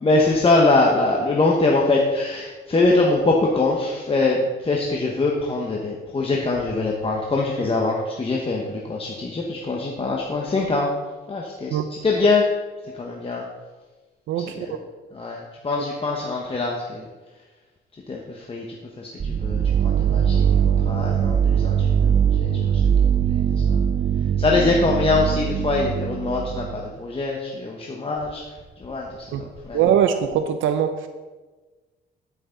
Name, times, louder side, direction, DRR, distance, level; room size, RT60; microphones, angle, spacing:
voice 1, 0.0-11.0 11.3-12.5 12.9-13.4 14.4-14.7 15.1-17.1 18.1-18.7 19.0-23.8 24.4-28.4 28.8-29.8, left 3 dB, 30° left, -1 dB, 1.2 m, -23 dB
voice 2, 14.3-14.7 29.3-29.4 29.7-31.0, right 9 dB, 80° right, 9 dB, 0.6 m, -21 dB
sound 1, 19.2-26.9, right 8 dB, 35° right, 0.4 m, -21 dB
12.5 x 6.4 x 3.9 m, 1.3 s
cardioid pair, 90°, 20 cm